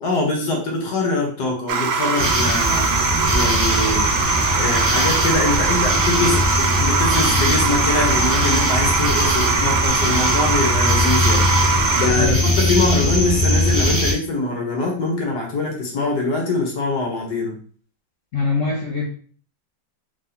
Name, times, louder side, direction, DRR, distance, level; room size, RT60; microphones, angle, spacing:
voice 1, 0.0-2.9 3.3-4.1 4.5-11.5 11.9-17.6, left 3 dB, 60° left, 1 dB, 1.4 m, -23 dB
sound 1, 1.7-12.1, right 5 dB, 85° right, 1.4 m, -22 dB
sound 2, 2.2-14.1, left 1 dB, 20° right, 0.3 m, -20 dB
voice 2, 12.1-12.6 18.3-19.1, left 3 dB, 80° left, -1 dB, 0.6 m, -23 dB
3.5 x 2.8 x 3.9 m, 0.44 s
omnidirectional pair, 2.1 m